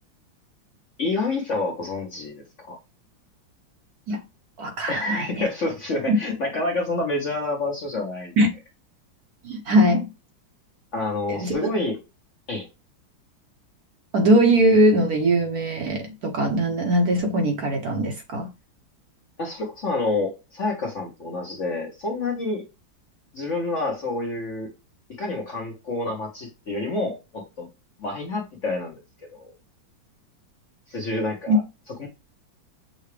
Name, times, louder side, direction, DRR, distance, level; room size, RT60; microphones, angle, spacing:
voice 1, 1.0-2.8 4.9-8.3 10.9-12.0 12.5-12.7 19.4-22.6 23.3-24.7 25.1-27.7 28.0-29.5 30.9-31.6 32.0-32.1, left 2 dB, 50° left, 1.0 m, -28 dB
voice 2, 4.6-5.5 6.1-6.2 8.4-8.5 9.4-10.1 11.3-11.5 14.1-18.5 31.5-31.6, right 1 dB, 60° right, 1.1 m, -20 dB
6.6 x 2.4 x 3.2 m
omnidirectional pair, 2.2 m